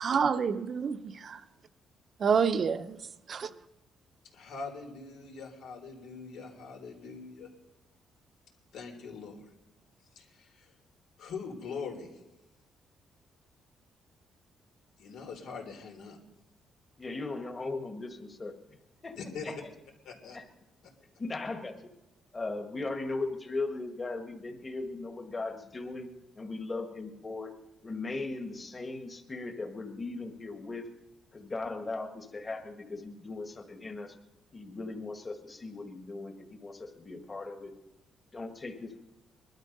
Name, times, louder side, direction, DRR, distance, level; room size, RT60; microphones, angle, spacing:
voice 1, 0.0-1.4 2.2-3.0 3.3-3.5, right 6 dB, 45° right, 0.8 m, -28 dB
voice 2, 4.3-7.5 8.7-9.4 10.1-10.7 11.2-12.1 15.0-16.2 19.1-19.5 20.0-20.4, left 5 dB, 85° left, 3.3 m, -42 dB
voice 3, 17.0-18.6 19.0-19.2 19.4-19.6 20.3-20.4 21.2-21.8 22.3-27.5 27.8-30.9 31.3-34.1 34.5-37.7 38.3-39.0, left 3 dB, 25° left, 1.6 m, -38 dB
21.0 x 12.0 x 5.3 m
cardioid pair, 105°, 0 cm